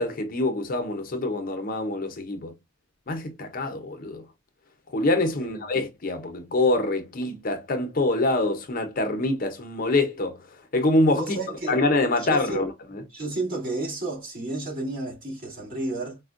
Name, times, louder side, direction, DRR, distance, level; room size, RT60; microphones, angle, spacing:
voice 1, 0.0-2.5 3.1-4.2 4.9-10.4 10.7-11.4 11.7-12.7, left 2 dB, 45° left, 0.6 m, -25 dB
voice 2, 11.2-11.8 12.2-12.7 13.1-16.2, right 2 dB, 45° right, 1.8 m, -32 dB
4.2 x 2.1 x 2.4 m
head